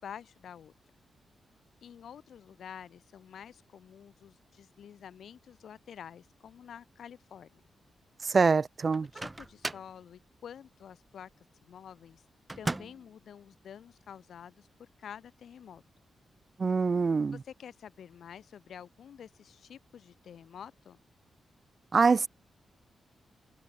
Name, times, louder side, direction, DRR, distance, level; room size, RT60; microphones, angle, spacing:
voice 1, 0.0-0.7 1.8-7.5 9.1-12.2 12.6-15.8 17.3-21.0, left 8 dB, 70° left, 7.3 m, -49 dB
voice 2, 8.2-9.1 16.6-17.4 21.9-22.3, right 4 dB, 35° right, 2.7 m, -24 dB
Microwave oven, 8.9-10.0 12.5-13.1, right 2 dB, 15° right, 3.3 m, -37 dB
wide cardioid pair, 125°, 0 cm